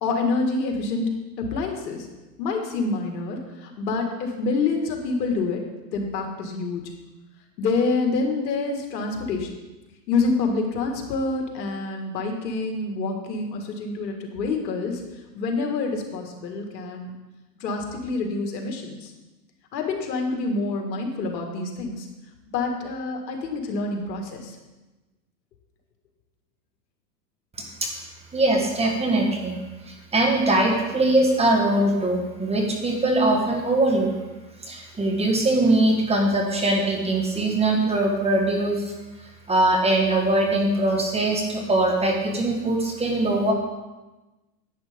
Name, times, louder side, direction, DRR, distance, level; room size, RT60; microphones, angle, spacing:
voice 1, 0.0-1.1 1.4-2.1 2.4-5.6 5.9-6.8 7.6-9.5 10.1-15.0 15.3-17.1 17.6-19.1 19.7-22.1 22.5-24.6, left 3 dB, 80° left, 3 dB, 2.1 m, -27 dB
voice 2, 28.3-29.6 29.9-34.1 34.6-38.9 39.5-43.5, right 2 dB, 10° right, 1 dB, 1.5 m, -22 dB
11.0 x 8.9 x 3.7 m, 1.1 s
hypercardioid pair, 120°, 50 cm